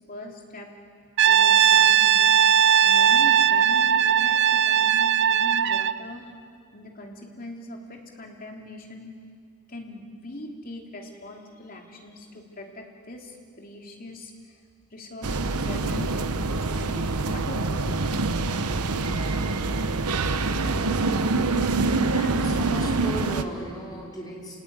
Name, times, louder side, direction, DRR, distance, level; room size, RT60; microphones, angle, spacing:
voice 1, 0.1-0.7 1.3-2.3 2.8-6.2 6.7-9.1 9.7-14.5 14.9-18.0 19.1-19.4, left 1 dB, 40° left, 1 dB, 3.1 m, -41 dB
Brass instrument, 1.2-6.0, right 9 dB, 50° right, 0.5 m, -18 dB
sound 1, 15.2-23.4, right 3 dB, 90° right, 1.2 m, -25 dB
voice 2, 22.1-24.6, equal, 20° left, -3 dB, 4.8 m, -36 dB
28.5 x 18.0 x 9.8 m, 2.2 s
head